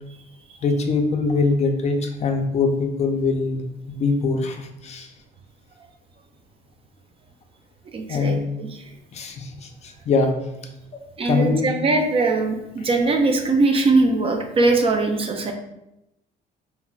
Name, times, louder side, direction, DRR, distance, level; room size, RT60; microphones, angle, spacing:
voice 1, 0.6-5.1 8.1-8.4 9.1-10.3 11.3-11.7, left 4 dB, 40° left, 4 dB, 0.4 m, -23 dB
voice 2, 7.9-8.8 11.2-15.5, right 3 dB, 35° right, 4 dB, 0.3 m, -21 dB
2.2 x 2.0 x 3.8 m, 0.88 s
cardioid pair, 110°, 17 cm